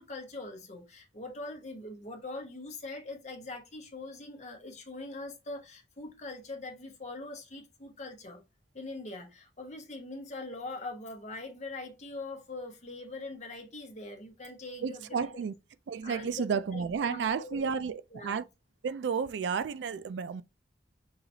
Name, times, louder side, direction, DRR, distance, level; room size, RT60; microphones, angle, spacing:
voice 1, 0.0-8.4 8.7-15.5 16.0-17.7 18.1-18.4, left 2 dB, 40° left, 1.0 m, -42 dB
voice 2, 14.8-15.5 15.9-18.4 18.8-20.4, right 6 dB, 80° right, 0.3 m, -32 dB
5.6 x 2.8 x 2.7 m
head